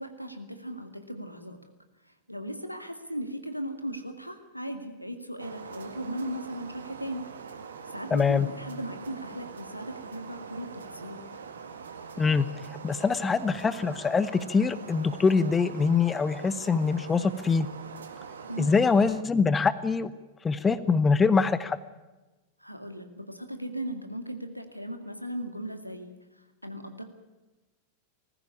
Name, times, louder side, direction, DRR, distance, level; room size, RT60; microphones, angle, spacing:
voice 1, 0.0-1.6 2.3-7.3 7.9-11.2 18.5-18.7 22.6-26.2 26.6-27.0, equal, 90° left, 8 dB, 2.1 m, -37 dB
sound 1, 5.4-19.2, right 5 dB, 70° right, 1.9 m, -43 dB
voice 2, 8.1-8.5 12.2-17.7 18.6-20.1 20.4-21.8, left 5 dB, 15° left, 15 dB, 0.9 m, -24 dB
19.5 x 15.5 x 9.6 m, 1.1 s
figure-of-eight pair, 90°, 0 cm